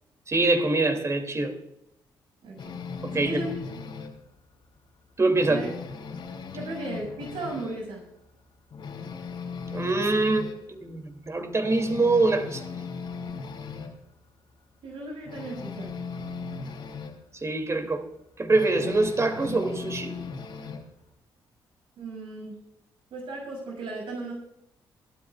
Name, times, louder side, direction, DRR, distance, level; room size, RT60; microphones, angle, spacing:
voice 1, 0.3-1.6 3.0-3.4 5.2-5.6 9.7-12.6 17.4-18.1 18.4-20.2, right 2 dB, 30° right, 6 dB, 2.7 m, -24 dB
voice 2, 2.4-2.7 3.1-3.5 5.5-5.7 6.5-8.0 14.8-15.9 22.0-22.6 23.1-24.3, right 2 dB, 75° right, -1 dB, 6.5 m, -36 dB
sound 1, 2.6-4.2 4.6-4.8 5.1-7.9 8.2-8.3 8.7-10.6 11.1-11.2 11.6-14.0 15.3-17.2 18.5-20.9, left 5 dB, 65° left, 3.2 m, -38 dB
23.0 x 12.5 x 2.4 m, 0.80 s
supercardioid pair, 60°, 9 cm